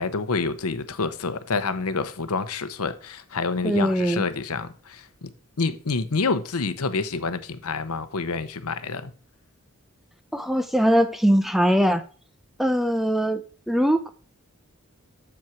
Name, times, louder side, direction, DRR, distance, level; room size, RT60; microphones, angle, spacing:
voice 1, 0.0-5.3 5.6-9.1, left 4 dB, 80° left, 0.8 m, -28 dB
voice 2, 3.6-4.2 10.3-12.0 12.6-14.1, equal, ahead, 0.5 m, -21 dB
7.7 x 7.2 x 4.5 m
head